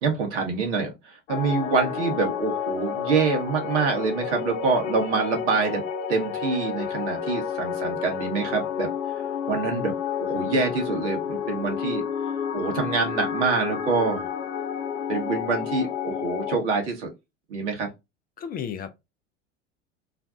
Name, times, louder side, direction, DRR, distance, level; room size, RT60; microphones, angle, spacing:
voice 1, 0.0-5.8 6.1-8.9 9.5-12.0 12.5-14.3 15.1-17.1 17.5-17.9, right 4 dB, 75° right, 1.4 m, -26 dB
sound 1, 1.3-16.6, left 7 dB, 85° left, 0.6 m, -30 dB
voice 2, 18.4-19.0, left 8 dB, 25° left, 0.4 m, -33 dB
3.2 x 2.2 x 2.5 m
hypercardioid pair, 80°, 35 cm